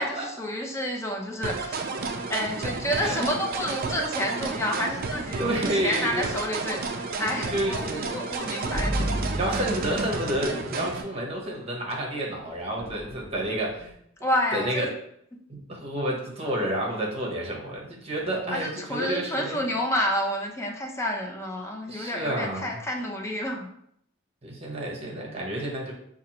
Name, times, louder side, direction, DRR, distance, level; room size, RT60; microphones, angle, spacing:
voice 1, 0.0-1.8 2.3-9.1 14.2-14.9 15.3-15.4 18.5-23.7, equal, 15° left, 0 dB, 0.5 m, -29 dB
sound 1, 1.4-11.0, right 4 dB, 50° right, 0.4 m, -32 dB
voice 2, 5.4-6.3 7.5-8.1 9.3-13.9 14.5-14.9 15.5-19.6 21.9-22.7 24.4-25.9, right 1 dB, 30° right, -2 dB, 0.8 m, -30 dB
sound 2, 8.7-10.5 12.8-13.7, equal, 40° left, 1.3 m, -31 dB
4.2 x 2.5 x 2.8 m, 0.71 s
head